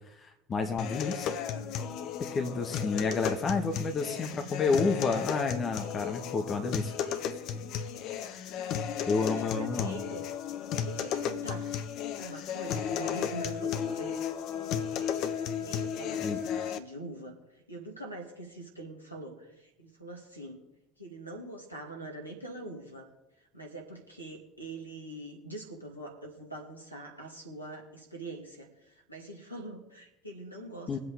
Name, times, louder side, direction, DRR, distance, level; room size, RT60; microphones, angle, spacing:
voice 1, 0.2-1.3 2.2-6.9 9.1-10.0 16.2-16.4 30.9-31.0, left 4 dB, 30° left, 5 dB, 1.7 m, -30 dB
sound 1, 0.8-16.8, left 8 dB, 50° left, 0.9 m, -34 dB
voice 2, 2.7-3.4 9.2-10.2 10.7-11.7 12.2-14.3 15.4-20.6 21.0-23.1 23.5-31.0, right 2 dB, 90° left, 1 dB, 2.3 m, -43 dB
22.0 x 7.9 x 3.7 m, 0.95 s
figure-of-eight pair, 65°, 0 cm